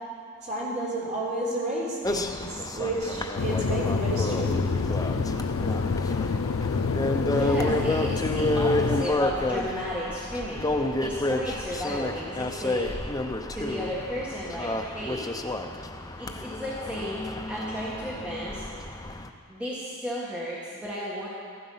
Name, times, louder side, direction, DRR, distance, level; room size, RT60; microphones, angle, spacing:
voice 1, 0.4-4.7, right 1 dB, 35° right, -6 dB, 3.6 m, -31 dB
sound 1, 2.0-19.3, left 1 dB, 15° left, 0.6 m, -30 dB
sound 2, 3.4-9.0, left 4 dB, 70° left, 0.5 m, -27 dB
voice 2, 7.1-13.1 13.5-15.2 15.9-18.6 19.5-21.3, equal, 5° right, -7 dB, 1.7 m, -34 dB
14.5 x 11.5 x 5.6 m, 2.2 s
head